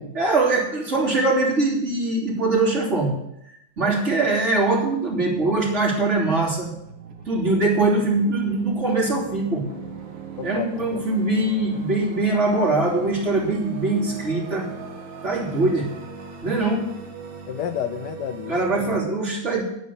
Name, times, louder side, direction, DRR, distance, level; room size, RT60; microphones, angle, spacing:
voice 1, 0.0-3.2 3.8-6.7 7.3-9.7 10.4-14.7 15.2-15.9 16.4-16.9 18.5-19.6, right 2 dB, 35° right, -3 dB, 3.3 m, -22 dB
sound 1, 4.9-19.0, right 4 dB, 65° right, 2.3 m, -39 dB
voice 2, 10.4-10.9 17.5-19.0, left 11 dB, 70° left, 10 dB, 1.0 m, -31 dB
11.0 x 8.4 x 7.1 m, 0.80 s
omnidirectional pair, 2.2 m